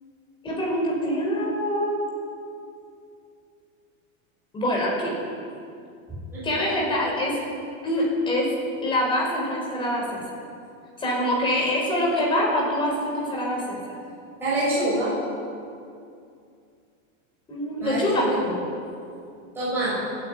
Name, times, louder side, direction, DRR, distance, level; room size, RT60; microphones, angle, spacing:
voice 1, 0.4-2.1 4.5-5.2 6.4-7.4 7.8-8.5 8.8-10.2 11.0-13.8 17.5-18.5, left 1 dB, 10° left, -3 dB, 5.4 m, -25 dB
voice 2, 14.4-15.1 17.8-18.5 19.5-20.0, right 1 dB, 5° right, -12 dB, 6.8 m, -25 dB
28.0 x 10.5 x 9.6 m, 2.5 s
supercardioid pair, 175°, 41 cm